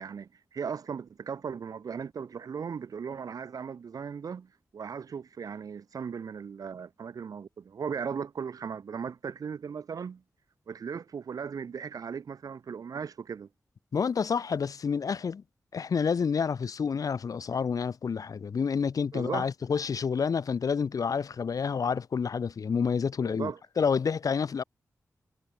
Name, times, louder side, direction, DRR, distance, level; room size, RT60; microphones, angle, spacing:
voice 1, 0.0-10.2 10.7-13.5 19.1-19.5 23.2-23.6, right 6 dB, 80° right, 1.2 m, -37 dB
voice 2, 13.9-15.4 15.7-24.6, left 6 dB, 75° left, 1.0 m, -29 dB
cardioid pair, 55°, 6 cm